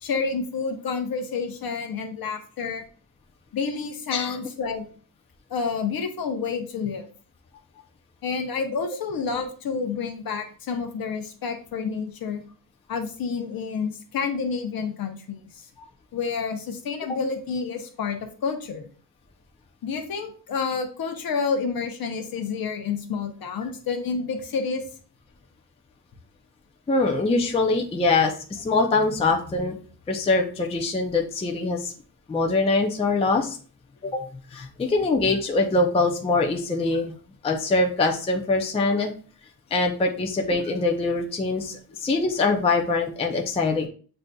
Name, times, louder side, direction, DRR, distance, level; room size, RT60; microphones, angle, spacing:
voice 1, 0.0-2.8 3.5-4.9 5.5-7.0 8.2-12.4 12.9-15.7 16.1-18.9 19.8-24.8, left 5 dB, 60° left, 6 dB, 0.8 m, -29 dB
voice 2, 26.9-29.7 30.1-31.9 32.3-33.6 34.0-34.2 34.5-37.1 37.4-39.1 39.7-43.9, left 3 dB, 15° left, 2 dB, 0.4 m, -23 dB
7.6 x 2.6 x 2.2 m, 0.41 s
wide cardioid pair, 175°, 39 cm